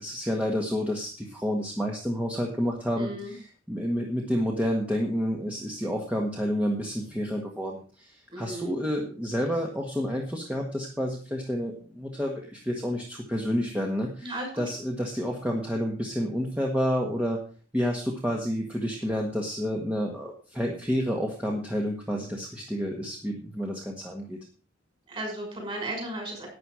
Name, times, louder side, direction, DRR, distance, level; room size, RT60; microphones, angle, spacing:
voice 1, 0.0-17.4 17.7-24.4, equal, 5° right, 0 dB, 1.6 m, -29 dB
voice 2, 3.0-3.3 8.3-8.7 14.2-14.6 25.1-26.5, right 1 dB, 30° right, 1 dB, 5.9 m, -35 dB
12.0 x 9.1 x 4.9 m, 0.39 s
head